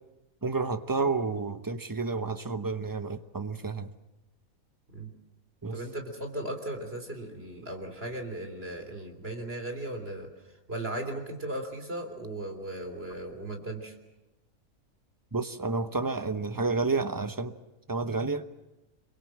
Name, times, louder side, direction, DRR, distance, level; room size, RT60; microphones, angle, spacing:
voice 1, 0.4-3.9 5.6-5.8 15.3-17.5 17.9-18.4, right 4 dB, 15° right, 0.9 m, -30 dB
voice 2, 5.7-14.0, right 1 dB, 45° right, 3.7 m, -37 dB
27.0 x 23.5 x 7.6 m
omnidirectional pair, 1.5 m